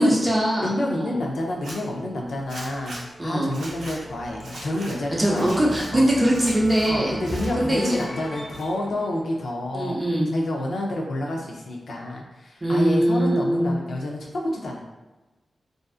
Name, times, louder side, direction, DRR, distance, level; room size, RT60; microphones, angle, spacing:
voice 1, 0.0-1.2 3.2-3.5 5.2-7.1 7.6-8.0 9.7-10.3 12.6-13.7, right 1 dB, 20° right, -3 dB, 0.5 m, -22 dB
voice 2, 0.6-6.1 6.9-10.0 10.3-14.8, left 1 dB, 85° left, -1 dB, 0.4 m, -29 dB
sound 1, 1.1-10.2, equal, 25° left, 0.5 m, -39 dB
Zipper (clothing), 1.5-1.8 2.5-3.0 3.5-4.0 4.4-4.9 5.3-5.9 6.3-6.9 7.2-8.0 8.4-9.0, right 1 dB, 80° right, 0.6 m, -40 dB
2.5 x 2.4 x 2.4 m, 1.1 s
wide cardioid pair, 135°, 0 cm